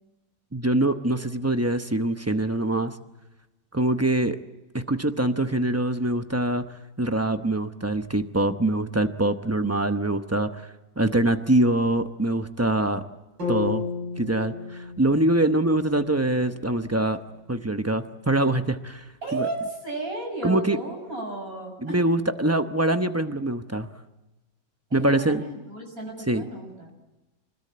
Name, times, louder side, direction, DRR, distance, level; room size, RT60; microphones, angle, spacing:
voice 1, 0.5-2.9 3.7-4.4 4.7-6.6 7.0-13.0 13.5-13.8 14.2-17.2 17.5-19.0 19.3-19.5 20.4-20.8 21.8-23.9 24.9-25.4 26.3-26.4, right 1 dB, 25° right, 8 dB, 0.3 m, -24 dB
sound 1, 13.4-17.5, left 5 dB, 80° right, 8.9 m, -34 dB
voice 2, 19.2-22.0 25.0-26.9, right 2 dB, 50° right, 2 dB, 6.7 m, -33 dB
25.0 x 20.5 x 8.6 m, 1.0 s
omnidirectional pair, 1.9 m